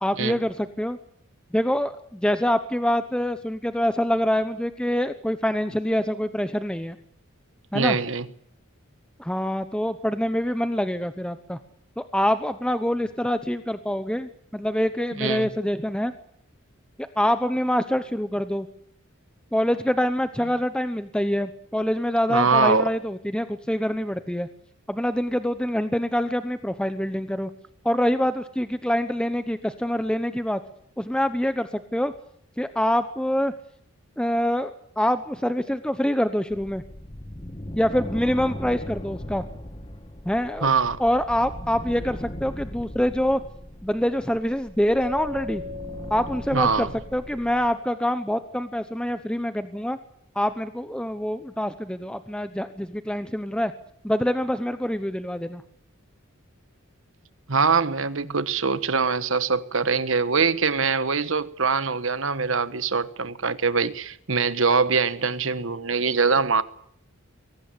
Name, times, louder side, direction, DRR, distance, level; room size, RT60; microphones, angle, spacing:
voice 1, 0.0-1.0 1.5-7.0 7.7-8.0 9.2-11.6 12.0-16.1 17.2-18.7 19.5-24.5 24.9-27.5 27.8-30.6 31.0-32.1 32.6-33.5 34.2-36.8 37.8-39.4 40.2-40.7 41.0-43.4 43.8-45.6 46.1-50.0 50.3-53.7 54.0-55.6, equal, 5° left, 0.9 m, -25 dB
voice 2, 7.7-8.3 15.2-15.5 22.3-22.9 40.6-41.0 46.5-46.9 57.5-66.6, right 5 dB, 65° right, 1.3 m, -23 dB
sound 1, 36.5-47.7, left 1 dB, 25° left, 1.6 m, -38 dB
Mallet percussion, 45.0-48.0, left 3 dB, 45° right, 3.6 m, -39 dB
23.0 x 18.0 x 8.6 m
head